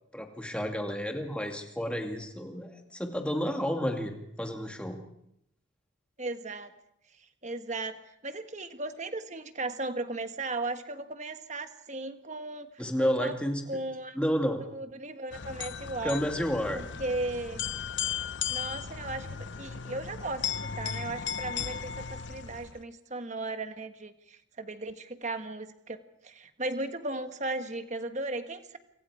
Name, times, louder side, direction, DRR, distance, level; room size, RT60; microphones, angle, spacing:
voice 1, 0.1-5.0 12.8-13.6 14.2-14.6 16.0-16.8, equal, 5° left, 3 dB, 2.3 m, -31 dB
voice 2, 6.2-6.7 7.2-12.7 13.0-13.4 13.7-14.2 14.7-16.2 16.7-17.6 18.5-28.8, right 2 dB, 35° right, 8 dB, 1.4 m, -36 dB
sound 1, 15.3-22.8, left 8 dB, 60° left, 0.8 m, -36 dB
28.0 x 25.5 x 4.9 m, 0.78 s
head